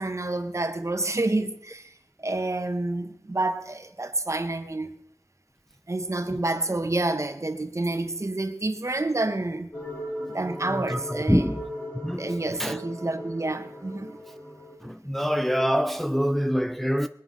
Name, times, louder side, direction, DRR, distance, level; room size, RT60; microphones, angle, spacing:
voice 1, 0.0-1.9 2.2-4.9 5.9-9.7 10.3-11.4 12.2-14.2, right 2 dB, 45° right, 1.6 m, -28 dB
sound 1, 9.7-14.8, equal, 30° left, 3.1 m, -38 dB
voice 2, 10.7-11.7 12.0-12.3 12.6-12.8 14.3-14.4 14.8-17.1, equal, 5° left, 0.6 m, -26 dB
19.5 x 10.0 x 5.7 m
wide cardioid pair, 50°, 7 cm